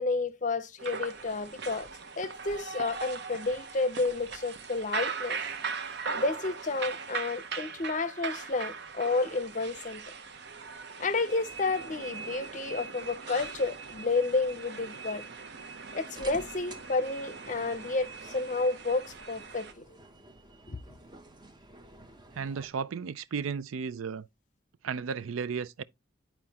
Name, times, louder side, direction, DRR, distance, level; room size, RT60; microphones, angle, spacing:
voice 1, 0.0-1.9 2.2-5.4 6.2-10.0 11.0-15.2 15.9-20.0 20.7-20.8, left 3 dB, 40° left, 0.6 m, -31 dB
sound 1, 0.8-19.7, right 5 dB, 55° right, 0.7 m, -40 dB
sound 2, 16.2-22.7, right 2 dB, 20° right, 0.7 m, -52 dB
voice 2, 22.3-24.3 24.8-25.8, right 6 dB, 85° right, 0.4 m, -34 dB
11.0 x 4.4 x 2.8 m
head